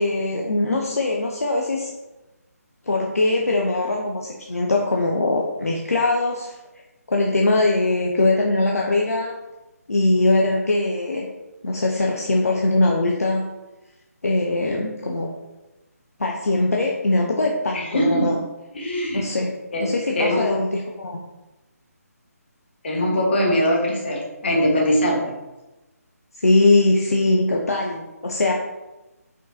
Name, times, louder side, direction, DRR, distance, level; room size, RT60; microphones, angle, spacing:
voice 1, 0.0-1.9 2.9-6.5 7.1-9.3 9.9-11.3 11.6-13.4 14.2-15.3 16.2-18.4 19.1-19.5 19.8-21.2 26.4-28.5, left 2 dB, 65° left, -1 dB, 0.6 m, -21 dB
voice 2, 17.7-18.3 18.7-19.2 19.7-19.9 20.1-20.6 22.8-25.3, equal, 40° left, -2 dB, 1.3 m, -22 dB
5.0 x 3.7 x 2.7 m, 1.0 s
figure-of-eight pair, 150°, 9 cm